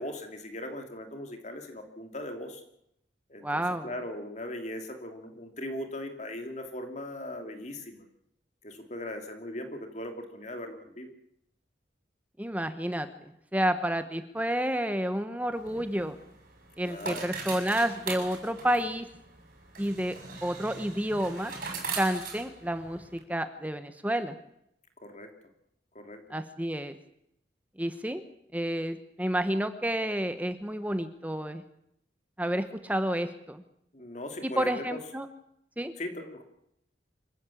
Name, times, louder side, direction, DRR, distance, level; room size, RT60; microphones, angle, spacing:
voice 1, 0.0-2.6 3.3-8.1 8.6-11.1 16.8-17.3 25.0-25.3 25.9-26.2 33.9-35.0 36.0-36.4, left 1 dB, 40° left, 5 dB, 2.8 m, -39 dB
voice 2, 3.4-3.9 12.4-16.2 16.8-19.1 19.8-21.5 22.0-24.3 26.3-26.9 27.8-28.2 28.5-31.6 32.4-33.6 34.4-35.3 35.8-35.9, right 1 dB, 10° right, 9 dB, 1.1 m, -30 dB
sound 1, 15.5-23.2, right 4 dB, 50° right, 6.9 m, -41 dB
25.5 x 15.0 x 8.5 m, 0.77 s
head